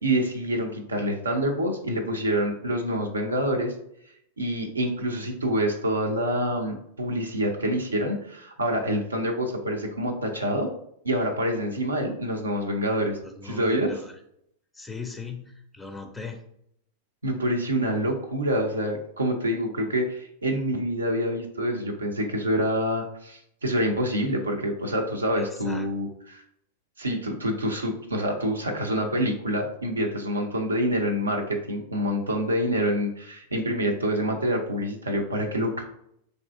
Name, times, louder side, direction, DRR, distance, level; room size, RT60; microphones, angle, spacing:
voice 1, 0.0-3.7 4.4-10.7 11.0-13.2 13.4-14.0 17.2-26.4 27.0-35.8, equal, 80° right, 3 dB, 0.5 m, -26 dB
voice 2, 13.2-14.1 14.7-16.4 25.4-25.9, left 4 dB, 5° left, 6 dB, 0.4 m, -39 dB
3.3 x 2.6 x 3.4 m, 0.72 s
figure-of-eight pair, 95°, 0 cm